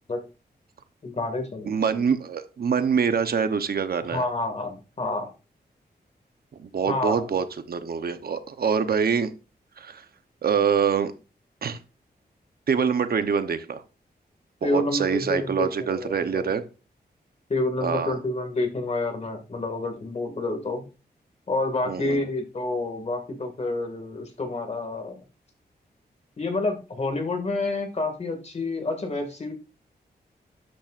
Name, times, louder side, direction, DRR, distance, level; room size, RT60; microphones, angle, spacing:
voice 1, 1.0-1.8 4.1-5.3 6.9-7.3 14.6-16.4 17.5-20.9 21.5-25.2 26.4-29.5, left 2 dB, 40° left, 5 dB, 2.1 m, -28 dB
voice 2, 1.7-4.2 6.6-9.3 9.8-10.0 10.4-11.1 11.6-11.8 12.7-13.8 14.6-16.6 17.8-18.2 21.9-22.2, right 6 dB, 65° right, 9 dB, 0.9 m, -25 dB
12.5 x 8.9 x 2.5 m, 0.32 s
wide cardioid pair, 160°, 17 cm